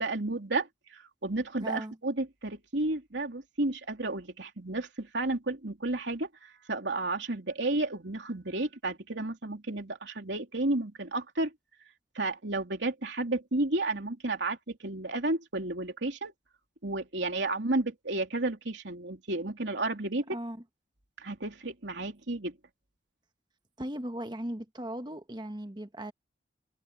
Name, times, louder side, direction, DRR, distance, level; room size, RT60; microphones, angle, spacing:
voice 1, 0.0-11.5 12.1-16.3 16.8-20.4 21.2-22.5, right 2 dB, 80° right, 3.2 m, -32 dB
voice 2, 1.6-2.0 20.3-20.6 23.8-26.1, right 1 dB, 25° right, 1.3 m, -37 dB
head